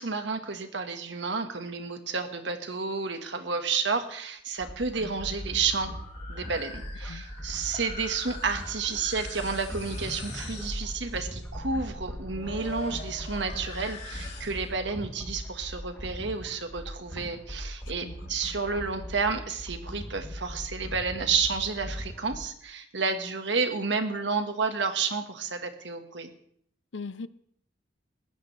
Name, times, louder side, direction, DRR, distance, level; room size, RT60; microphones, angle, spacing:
voice 1, 0.0-5.9 6.3-26.3, right 4 dB, 75° right, 1.7 m, -31 dB
sound 1, 4.6-22.4, equal, 10° left, 3.0 m, -40 dB
sound 2, 4.9-14.8, left 2 dB, 40° left, 4.7 m, -44 dB
voice 2, 17.8-18.4 26.9-27.3, left 4 dB, 90° left, 0.7 m, -40 dB
20.5 x 15.5 x 3.4 m
head